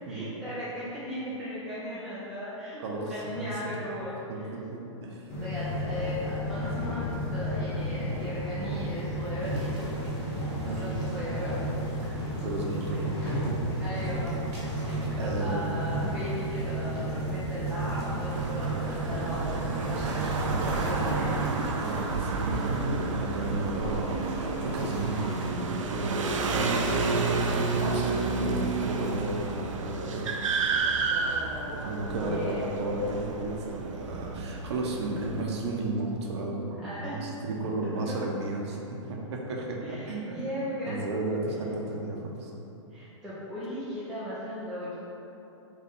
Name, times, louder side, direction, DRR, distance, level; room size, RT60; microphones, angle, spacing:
voice 1, 0.1-4.5 5.3-10.0 10.6-11.8 13.8-14.3 15.2-19.6 19.8-21.3 22.3-22.7 31.1-31.8 32.2-32.7 36.8-37.2 39.8-41.1 42.9-45.0, equal, 5° right, -12 dB, 0.6 m, -37 dB
voice 2, 2.8-3.5 4.3-5.2 10.6-10.9 12.3-13.3 15.2-15.7 21.7-26.7 27.1-30.3 31.8-38.8 39.1-40.5 40.9-42.5, right 2 dB, 60° right, -1 dB, 0.8 m, -33 dB
sound 1, 5.3-21.5, right 1 dB, 40° left, 1.4 m, -32 dB
sound 2, 9.4-25.5, right 1 dB, 30° right, 1.4 m, -44 dB
sound 3, 18.3-35.4, right 3 dB, 90° right, 0.5 m, -30 dB
3.9 x 3.3 x 3.6 m, 2.9 s
hypercardioid pair, 150°, 16 cm